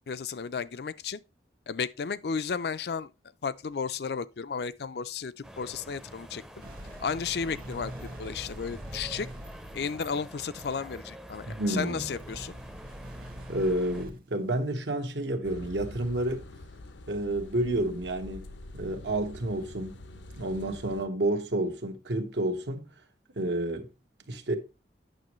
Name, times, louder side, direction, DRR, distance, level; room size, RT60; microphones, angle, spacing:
voice 1, 0.1-1.2 1.7-3.1 3.4-6.4 7.0-7.9 8.2-9.3 9.7-12.5, left 5 dB, 60° left, 0.4 m, -33 dB
sound 1, 5.4-14.1, equal, 5° right, 0.5 m, -46 dB
sound 2, 6.6-9.9 12.2-14.2, right 1 dB, 50° right, 1.4 m, -44 dB
voice 2, 11.5-12.1 13.5-16.4 17.1-18.5 18.7-20.0 20.4-22.9 23.3-23.9 24.3-24.6, right 1 dB, 80° right, 1.4 m, -30 dB
sound 3, 15.4-21.0, left 2 dB, 85° left, 0.8 m, -45 dB
8.9 x 6.2 x 3.1 m
head